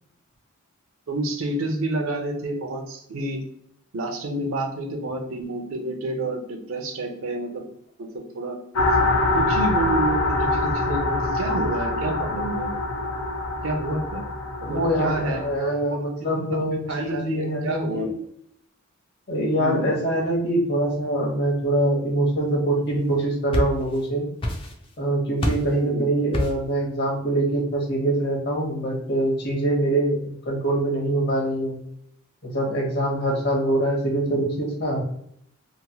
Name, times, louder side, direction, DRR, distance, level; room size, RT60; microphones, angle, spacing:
voice 1, 1.1-3.4 3.9-7.7 8.0-8.6 9.3-12.7 13.6-14.2 14.6-15.4 15.9-16.0 16.4-18.1 19.6-19.8 25.8-26.0, right 2 dB, 65° right, 3 dB, 0.5 m, -29 dB
sound 1, 8.7-15.5, left 2 dB, 85° left, 0.5 m, -24 dB
voice 2, 14.6-18.1 19.3-24.3 25.0-31.8 32.4-35.0, right 1 dB, 50° left, -1 dB, 0.9 m, -24 dB
sound 2, 23.1-24.1 24.4-25.0 25.4-25.8 26.3-26.7, equal, 25° left, 0.4 m, -27 dB
2.9 x 2.1 x 2.8 m, 0.71 s
head